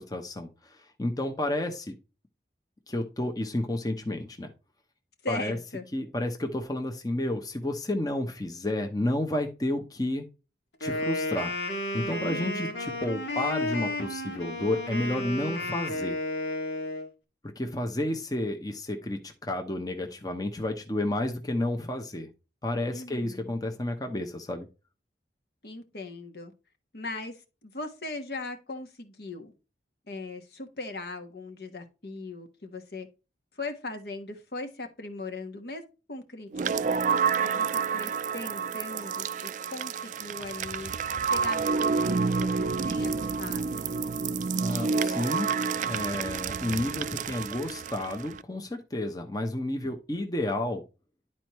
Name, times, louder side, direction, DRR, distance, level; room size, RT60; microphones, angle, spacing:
voice 1, 0.0-1.9 2.9-4.5 5.3-5.6 5.9-10.2 10.8-11.5 11.9-16.2 17.6-22.3 22.6-24.7 44.6-45.5 45.8-50.8, left 1 dB, 20° left, 0.9 m, -31 dB
voice 2, 5.2-5.8 12.2-12.9 22.9-23.6 25.6-26.5 26.9-29.5 30.1-33.1 33.5-35.8 36.1-36.9 37.4-40.9 41.2-43.9, left 2 dB, 60° left, 1.4 m, -39 dB
Wind instrument woodwind instrument, 10.8-17.1, left 1 dB, 80° left, 2.0 m, -32 dB
sound 1, 36.5-48.4, right 5 dB, 45° right, 0.4 m, -29 dB
11.0 x 4.4 x 3.0 m
head